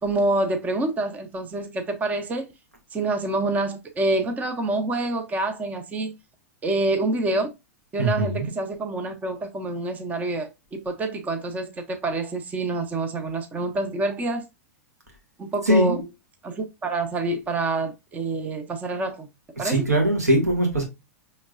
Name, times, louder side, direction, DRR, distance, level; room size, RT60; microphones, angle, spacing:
voice 1, 0.0-2.5 2.9-6.1 6.6-7.5 7.9-14.4 15.4-16.0 16.4-19.3 19.6-19.9, right 2 dB, 20° right, 0.7 m, -27 dB
voice 2, 8.0-8.5 15.6-16.0 19.6-20.8, right 1 dB, 85° right, 1.5 m, -21 dB
5.1 x 3.2 x 2.4 m
figure-of-eight pair, 100°, 8 cm